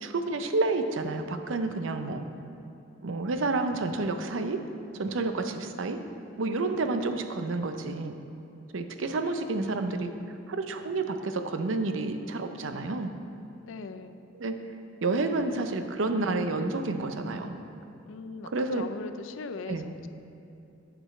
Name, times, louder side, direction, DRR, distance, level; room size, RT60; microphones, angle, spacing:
voice 1, 0.0-2.2 3.0-4.7 5.0-6.0 6.4-8.1 8.7-10.1 10.5-13.1 14.4-14.6 15.0-17.6 18.5-18.8 19.7-19.9, right 3 dB, 90° right, 7 dB, 0.6 m, -29 dB
voice 2, 13.6-14.2 18.1-20.1, left 4 dB, 85° left, 10 dB, 0.4 m, -40 dB
10.0 x 6.1 x 4.2 m, 2.8 s
head